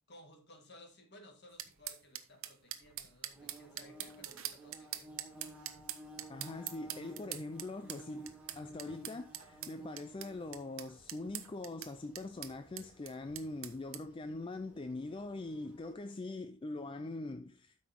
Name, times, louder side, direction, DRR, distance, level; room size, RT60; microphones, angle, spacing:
voice 1, 0.1-5.3, left 1 dB, 50° left, 2.0 m, -58 dB
sound 1, 1.6-14.0, right 12 dB, 65° right, 0.9 m, -44 dB
Bird / Buzz, 3.3-15.9, right 1 dB, 5° right, 2.4 m, -56 dB
voice 2, 6.3-17.8, left 2 dB, 25° left, 0.3 m, -42 dB
12.5 x 5.4 x 3.7 m
head